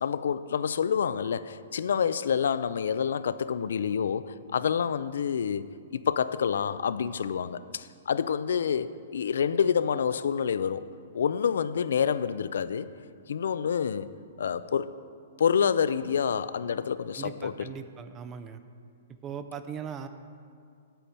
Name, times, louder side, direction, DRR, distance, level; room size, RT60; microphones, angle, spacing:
voice 1, 0.0-10.9 11.1-12.9 13.3-14.1 14.4-14.9 15.4-17.7, left 7 dB, 80° left, 15 dB, 0.4 m, -28 dB
voice 2, 17.2-18.6 19.2-20.1, right 7 dB, 20° right, 9 dB, 0.4 m, -39 dB
9.0 x 8.2 x 4.3 m, 2.2 s
hypercardioid pair, 160°, 0 cm